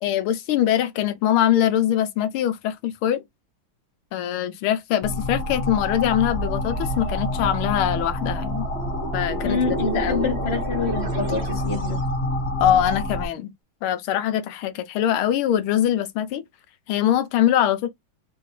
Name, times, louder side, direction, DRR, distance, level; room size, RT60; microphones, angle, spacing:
voice 1, 0.0-3.2 4.1-8.7 9.1-10.3 12.6-13.5 13.8-16.4 16.9-17.9, left 11 dB, 85° left, 1.6 m, -23 dB
sound 1, 5.0-13.3, left 1 dB, 50° left, 0.7 m, -28 dB
sound 2, 6.3-12.1, right 3 dB, 60° right, 0.7 m, -34 dB
voice 2, 9.4-12.0, left 4 dB, 20° left, 1.0 m, -26 dB
4.7 x 2.5 x 3.1 m
omnidirectional pair, 2.3 m